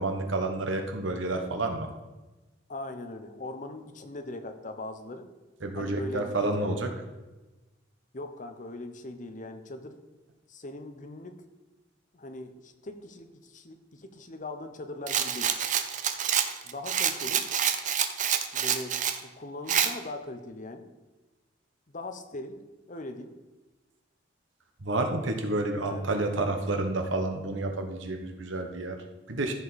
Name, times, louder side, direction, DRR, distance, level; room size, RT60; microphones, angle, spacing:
voice 1, 0.0-1.9 5.6-6.9 24.8-29.5, right 2 dB, 80° right, 5 dB, 1.2 m, -30 dB
voice 2, 2.7-5.3 5.8-6.9 8.1-10.0 10.5-11.4 12.1-15.5 16.6-17.4 18.5-19.0 19.2-20.9 21.9-22.6 22.9-23.3 25.8-26.2, left 2 dB, 40° left, 7 dB, 0.8 m, -40 dB
Rattle, 15.1-19.2 19.7-19.9, right 8 dB, 40° right, 0.6 m, -27 dB
14.0 x 5.0 x 4.2 m, 1.1 s
head